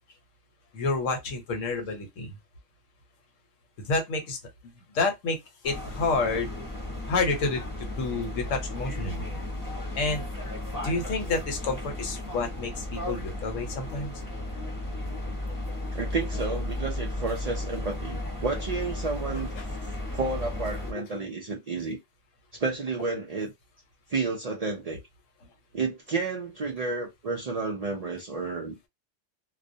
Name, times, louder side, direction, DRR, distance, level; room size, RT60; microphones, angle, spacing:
voice 1, 0.7-2.4 3.8-4.4 4.9-5.4 5.6-6.6 7.1-7.6 8.0-9.3 10.0-10.3 10.8-14.1 19.6-19.7, left 3 dB, 85° left, 1.2 m, -29 dB
sound 1, 5.6-20.9, left 1 dB, 20° left, 0.8 m, -34 dB
voice 2, 15.9-19.5 20.1-22.0 22.5-23.5 24.1-25.0 25.7-28.8, right 4 dB, 75° right, 0.3 m, -31 dB
2.4 x 2.1 x 2.6 m
omnidirectional pair, 1.3 m